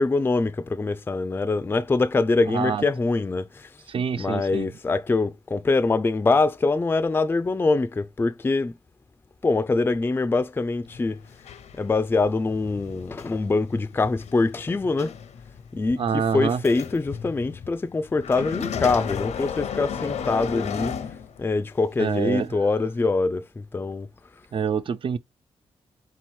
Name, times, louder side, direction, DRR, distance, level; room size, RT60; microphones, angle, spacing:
voice 1, 0.0-3.8 4.2-8.7 9.4-11.2 11.7-15.1 15.7-20.9 21.4-24.1, left 3 dB, 20° left, 0.3 m, -24 dB
voice 2, 3.9-4.7 16.0-16.6 22.0-22.5 24.5-25.2, right 7 dB, 50° right, 0.4 m, -26 dB
sound 1, 10.9-21.7 22.4-22.5, left 7 dB, 90° left, 0.7 m, -35 dB
3.8 x 3.0 x 4.3 m
cardioid pair, 95°, 11 cm